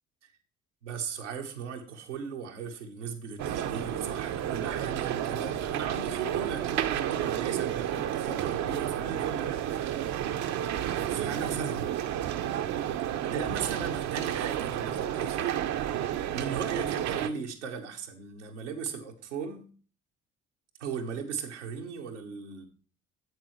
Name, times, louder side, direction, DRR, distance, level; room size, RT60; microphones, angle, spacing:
voice 1, 0.8-10.2 11.1-12.0 13.2-15.5 15.9-19.7 20.8-22.7, right 6 dB, 85° right, 2 dB, 1.1 m, -37 dB
sound 1, 3.4-17.3, right 11 dB, 50° right, 0.7 m, -31 dB
9.5 x 7.5 x 3.2 m, 0.41 s
figure-of-eight pair, 50°, 35 cm